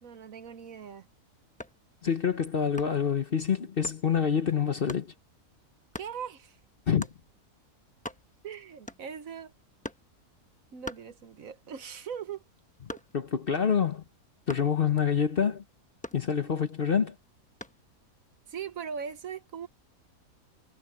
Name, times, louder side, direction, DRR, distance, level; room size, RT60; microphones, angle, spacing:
voice 1, 0.0-1.1 6.0-6.6 8.4-9.5 10.7-12.4 12.9-13.0 18.5-19.7, right 7 dB, 65° right, 1.4 m, -40 dB
sound 1, 1.6-1.9 2.8-3.1 3.8-4.1 4.9-5.1 5.9-6.2 7.0-7.2 7.7-7.8 7.9-8.5 8.9-9.3 9.8-10.1 10.8-11.6 12.0-13.4 14.5-14.8 16.0-16.7 17.6-17.9, left 1 dB, 5° left, 0.8 m, -42 dB
voice 2, 2.0-5.1 6.9-7.1 13.1-14.0 14.5-15.6 16.1-17.1, left 7 dB, 45° left, 1.0 m, -26 dB
omnidirectional pair, 1.6 m